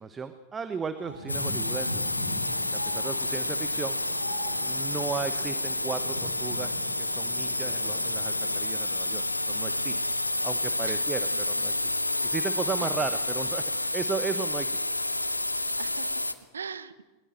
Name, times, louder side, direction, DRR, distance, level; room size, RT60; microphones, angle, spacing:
voice 1, 0.0-2.0 2.7-4.0 4.6-9.9 10.4-11.2 11.5-11.7 12.2-14.8, right 5 dB, 20° right, 11 dB, 1.0 m, -35 dB
sound 1, 1.0-8.6, equal, 85° right, 5.5 m, -41 dB
sound 2, 1.3-16.3, left 2 dB, 85° left, 0.9 m, -29 dB
voice 2, 9.1-10.0 10.8-11.0 11.3-11.4 12.8-13.2 15.5-17.0, right 6 dB, 70° right, 15 dB, 0.9 m, -42 dB
21.0 x 20.5 x 7.7 m, 1.1 s
figure-of-eight pair, 90°, 0 cm